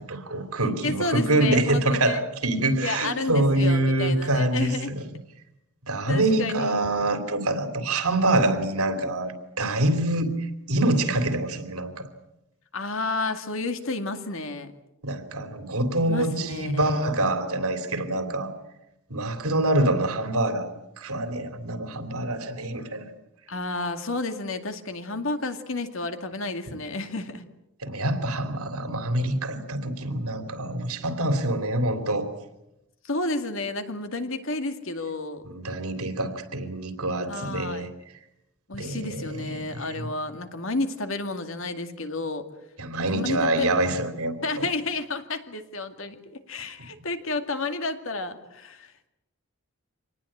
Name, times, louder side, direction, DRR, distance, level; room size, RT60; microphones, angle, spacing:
voice 1, 0.0-5.0 5.9-12.1 15.0-18.5 19.1-23.1 26.7-26.8 27.8-32.3 35.4-37.9 38.7-40.1 42.8-44.4, right 1 dB, 80° right, 9 dB, 3.1 m, -25 dB
voice 2, 0.8-2.2 2.8-4.9 6.1-6.6 12.7-14.7 16.1-17.0 23.5-27.4 33.0-35.4 37.3-37.9 38.7-42.4 43.1-43.7 44.4-49.1, left 3 dB, 60° left, 7 dB, 2.2 m, -31 dB
26.0 x 19.5 x 8.7 m, 0.91 s
head